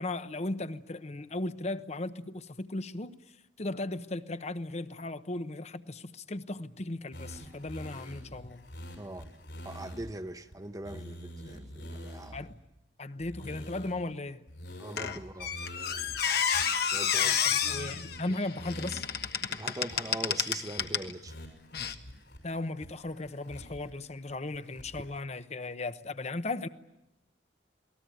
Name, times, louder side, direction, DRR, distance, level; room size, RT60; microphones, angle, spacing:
voice 1, 0.0-3.1 3.6-8.8 12.3-12.6 13.0-14.4 17.1-19.0 22.4-26.7, left 2 dB, 40° left, 0.9 m, -36 dB
sound 1, 7.1-10.1 10.5-10.6 10.8-12.5 13.2-14.1 14.5-17.3 17.6-18.2 18.6-19.3 19.6-19.7 19.9-20.4 20.8-20.9 21.3-22.4 22.8-23.9 24.3-25.1, equal, 80° left, 6.6 m, -46 dB
voice 2, 9.0-9.3 9.6-12.4 14.8-15.5 16.9-17.6 17.9-18.0 19.5-21.3, right 1 dB, 20° right, 0.9 m, -41 dB
Squeak, 15.0-21.1 21.7-21.9, left 8 dB, 60° left, 1.4 m, -30 dB
28.0 x 19.5 x 9.2 m
head